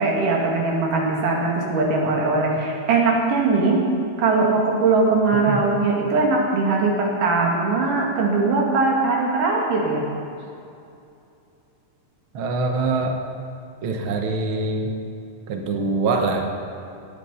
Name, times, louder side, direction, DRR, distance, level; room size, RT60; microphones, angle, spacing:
voice 1, 0.0-3.9 4.2-10.1, right 3 dB, 75° right, -1 dB, 3.5 m, -20 dB
voice 2, 12.3-13.1 13.8-14.9 15.5-16.5, right 3 dB, 60° right, 4 dB, 1.4 m, -23 dB
18.0 x 9.0 x 5.5 m, 2.6 s
omnidirectional pair, 3.7 m